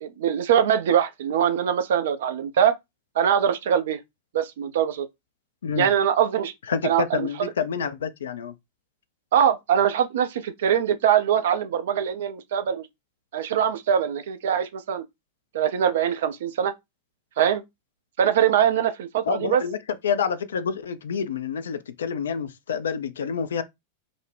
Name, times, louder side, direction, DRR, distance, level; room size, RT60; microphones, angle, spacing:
voice 1, 0.0-2.8 3.2-4.0 4.3-5.1 5.8-6.5 6.8-7.5 9.3-12.9 13.3-15.0 15.5-16.7 17.4-17.6 18.2-19.6, right 9 dB, 60° right, 0.4 m, -22 dB
voice 2, 6.7-8.5 19.3-19.8 20.0-23.6, left 6 dB, 65° left, 0.3 m, -28 dB
2.5 x 2.0 x 3.2 m
figure-of-eight pair, 90°, 0 cm